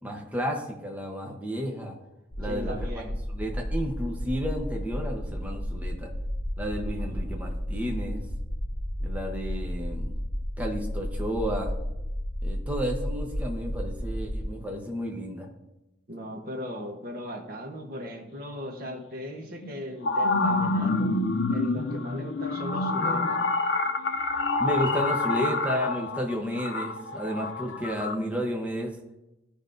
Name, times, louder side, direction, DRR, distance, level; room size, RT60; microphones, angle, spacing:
voice 1, 0.0-2.0 2.4-2.9 3.3-6.1 6.6-8.2 9.0-10.1 10.6-11.7 12.4-15.5 24.6-29.0, equal, 10° right, 0 dB, 0.9 m, -32 dB
sound 1, 2.3-14.5, equal, 40° left, 1.6 m, -32 dB
voice 2, 2.4-3.2 7.0-7.2 16.1-21.2 21.5-23.4, equal, 55° right, 4 dB, 1.1 m, -38 dB
sound 2, 18.8-18.9 19.6-28.2, left 2 dB, 80° left, 0.5 m, -27 dB
14.5 x 5.2 x 2.6 m, 0.96 s
head